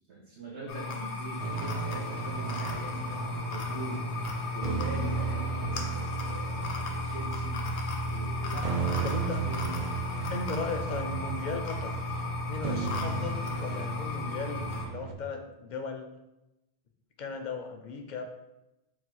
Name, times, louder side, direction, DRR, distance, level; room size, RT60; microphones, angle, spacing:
voice 1, 0.1-4.1 4.5-10.1, right 3 dB, 80° right, -5 dB, 1.1 m, -43 dB
sound 1, 0.7-14.9, left 4 dB, 85° left, 1.0 m, -35 dB
sound 2, 1.4-15.1, right 7 dB, 60° right, 0.4 m, -35 dB
voice 2, 9.0-9.4 10.3-16.1 17.2-18.2, left 4 dB, 55° left, 5 dB, 0.5 m, -37 dB
3.9 x 2.3 x 4.5 m, 0.93 s
omnidirectional pair, 1.1 m